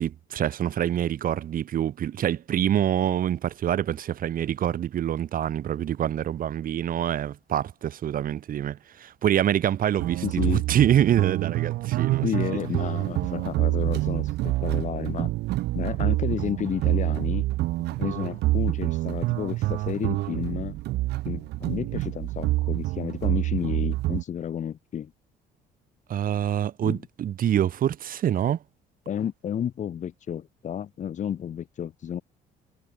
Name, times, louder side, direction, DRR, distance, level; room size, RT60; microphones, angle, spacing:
voice 1, 0.0-12.3 26.1-28.6, right 10 dB, 55° right, 3.9 m, -26 dB
sound 1, 10.0-24.2, right 18 dB, 80° right, 1.7 m, -27 dB
voice 2, 10.2-10.6 12.2-15.3 15.7-17.4 18.0-20.8 21.2-25.1 26.8-27.0 29.1-32.2, left 9 dB, 45° left, 1.4 m, -31 dB
cardioid pair, 110°, 17 cm